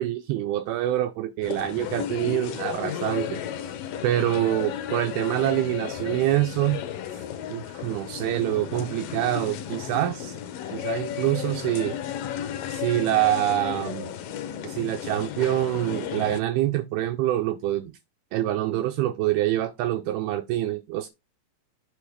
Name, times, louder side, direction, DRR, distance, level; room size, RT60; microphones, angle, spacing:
voice 1, 0.0-3.4 4.0-6.8 7.5-10.4 10.7-12.0 12.7-14.1 14.6-17.9 18.3-21.1, right 14 dB, 85° right, 2.3 m, -26 dB
sound 1, 1.4-16.4, left 10 dB, 75° left, 2.2 m, -34 dB
8.5 x 3.5 x 4.9 m
omnidirectional pair, 5.0 m